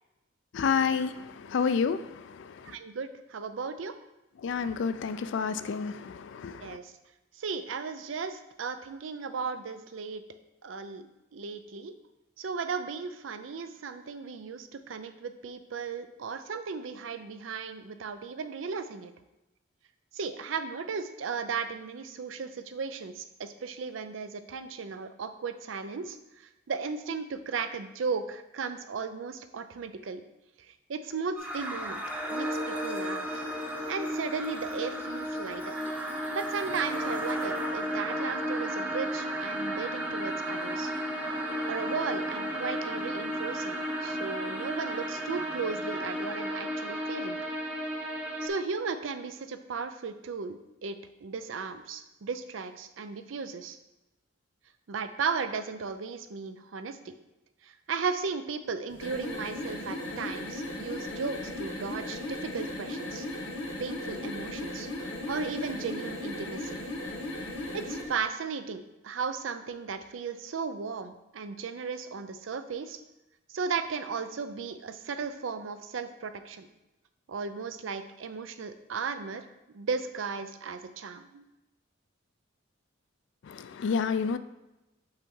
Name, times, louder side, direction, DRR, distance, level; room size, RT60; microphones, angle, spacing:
voice 1, 0.5-2.8 4.4-6.8 83.5-84.4, left 6 dB, 65° left, 12 dB, 0.3 m, -30 dB
voice 2, 2.6-3.9 6.6-6.9 7.3-10.2 10.6-11.9 12.4-19.1 20.1-30.2 30.6-32.0 32.3-33.4 33.9-35.8 36.3-40.9 41.6-47.4 48.4-53.8 54.9-57.1 57.6-63.3 63.8-66.8 67.7-73.0 73.5-76.7 77.3-81.4, right 5 dB, 80° right, 10 dB, 0.5 m, -36 dB
sound 1, 31.4-48.5, equal, 10° right, 0.8 m, -33 dB
sound 2, 58.9-68.1, left 1 dB, 85° left, 1.4 m, -37 dB
5.6 x 3.5 x 5.4 m, 0.96 s
head